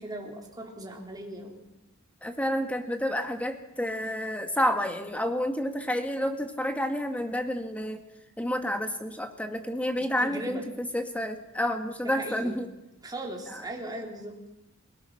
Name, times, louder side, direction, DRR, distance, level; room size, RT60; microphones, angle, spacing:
voice 1, 0.0-1.6 10.0-10.7 12.0-12.6 13.0-14.4, right 1 dB, 20° right, 0 dB, 3.8 m, -38 dB
voice 2, 2.2-8.0 8.4-12.7 13.5-13.6, equal, 5° left, 6 dB, 1.9 m, -30 dB
28.0 x 17.5 x 5.8 m, 0.90 s
head